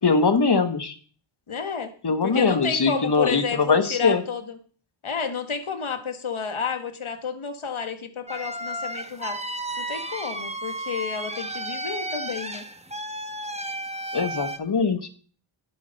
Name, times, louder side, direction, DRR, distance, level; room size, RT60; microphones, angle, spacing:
voice 1, 0.0-1.0 2.0-4.2 14.1-15.1, left 4 dB, 50° left, 9 dB, 1.6 m, -22 dB
voice 2, 1.5-1.9 2.2-4.6 5.0-9.4 9.8-12.6, left 6 dB, 75° left, 8 dB, 1.8 m, -31 dB
sound 1, 8.3-14.6, right 1 dB, 15° right, 1.3 m, -33 dB
10.5 x 8.8 x 5.4 m, 0.42 s
wide cardioid pair, 60°, 50 cm